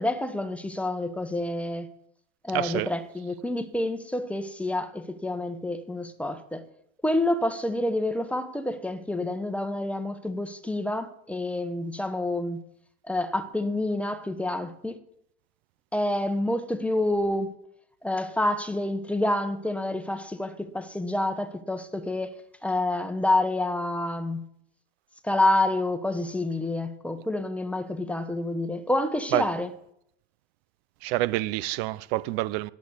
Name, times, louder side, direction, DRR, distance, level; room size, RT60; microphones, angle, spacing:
voice 1, 0.0-1.9 2.4-6.7 7.0-12.6 13.0-15.0 15.9-17.5 18.0-22.3 22.6-24.5 25.2-29.7, left 1 dB, 5° left, 1.1 m, -28 dB
voice 2, 2.5-2.9 29.3-29.4 31.0-32.7, right 18 dB, 75° right, 0.6 m, -27 dB
10.5 x 8.5 x 8.0 m
supercardioid pair, 115°, 32 cm